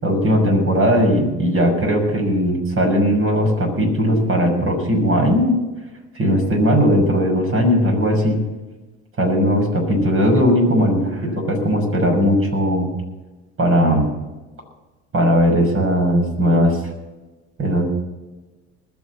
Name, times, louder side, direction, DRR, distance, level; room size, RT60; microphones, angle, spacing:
voice 1, 0.0-5.6 6.1-8.4 9.2-12.9 13.6-14.1 15.1-16.8 17.6-17.9, equal, 35° right, 2 dB, 6.4 m, -18 dB
20.5 x 7.3 x 7.3 m, 1.2 s
hypercardioid pair, 65°, 35 cm